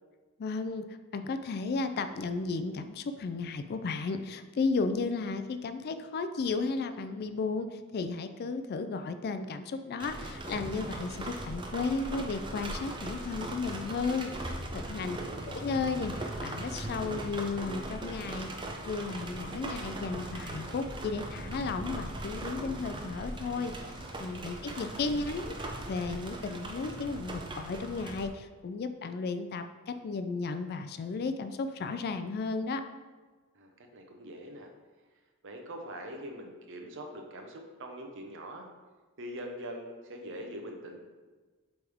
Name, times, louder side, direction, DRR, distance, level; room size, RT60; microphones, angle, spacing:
voice 1, 0.4-0.9 1.1-15.2 15.4-18.5 18.9-32.8, left 4 dB, 45° left, 9 dB, 0.3 m, -34 dB
sound 1, 10.0-28.3, right 1 dB, 20° right, 0.5 m, -39 dB
voice 2, 14.9-15.6 24.6-24.9 33.5-34.7 35.4-38.7 39.2-41.0, equal, 60° right, 3 dB, 0.8 m, -43 dB
sound 2, 20.0-21.1 21.4-21.8 23.0-24.1, left 1 dB, 80° left, 1.1 m, -54 dB
7.8 x 3.5 x 3.5 m, 1.3 s
head